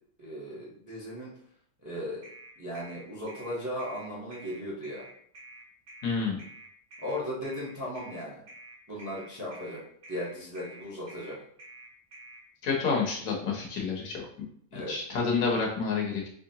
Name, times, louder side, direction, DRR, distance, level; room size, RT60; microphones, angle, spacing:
voice 1, 0.2-1.3 1.8-2.2 2.6-5.0 7.0-8.4 8.9-9.8 10.1-11.4 14.7-14.9, equal, 15° right, -5 dB, 0.7 m, -36 dB
sound 1, 2.2-12.4, right 2 dB, 60° right, 1.4 m, -49 dB
voice 2, 6.0-6.4 12.6-14.2 14.7-16.3, left 5 dB, 65° left, 0 dB, 1.2 m, -29 dB
3.8 x 3.1 x 2.7 m, 0.64 s
omnidirectional pair, 1.6 m